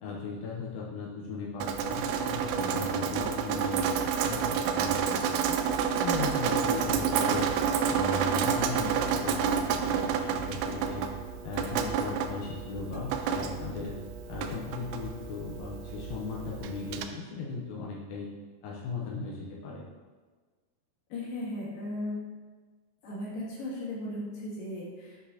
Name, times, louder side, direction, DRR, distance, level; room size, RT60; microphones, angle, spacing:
voice 1, 0.0-5.6 6.0-7.5 7.9-11.1 11.4-13.9 14.3-18.3 18.6-19.8, left 4 dB, 75° left, -5 dB, 2.2 m, -37 dB
Drip, 1.6-17.0, right 7 dB, 85° right, 2.7 m, -30 dB
voice 2, 21.1-22.2 23.0-25.3, left 1 dB, 60° left, -6 dB, 3.2 m, -36 dB
8.0 x 6.2 x 2.8 m, 1.4 s
omnidirectional pair, 4.9 m